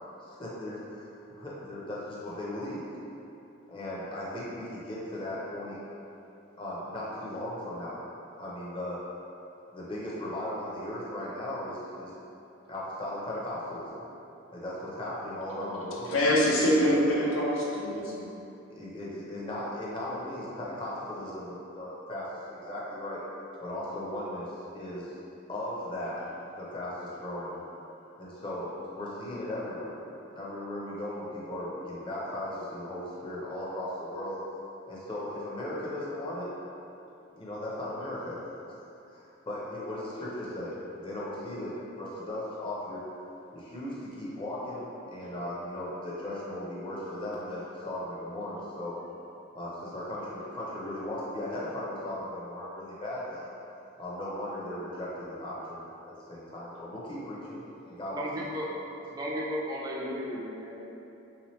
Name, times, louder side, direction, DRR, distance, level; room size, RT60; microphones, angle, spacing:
voice 1, 0.2-2.8 3.7-5.8 6.6-8.0 8.4-9.0 9.7-12.1 12.7-14.0 14.5-16.1 18.7-23.2 23.6-25.1 25.5-27.6 28.2-29.9 30.4-34.4 34.9-36.5 37.3-38.4 39.1-43.0 43.5-48.9 49.5-53.5 54.0-58.4, left 1 dB, 25° left, -7 dB, 0.6 m, -37 dB
voice 2, 16.1-18.3, equal, 75° left, -4 dB, 0.7 m, -25 dB
voice 3, 58.1-58.7 59.1-61.1, equal, 20° right, -4 dB, 0.3 m, -35 dB
3.4 x 2.9 x 3.1 m, 2.8 s
head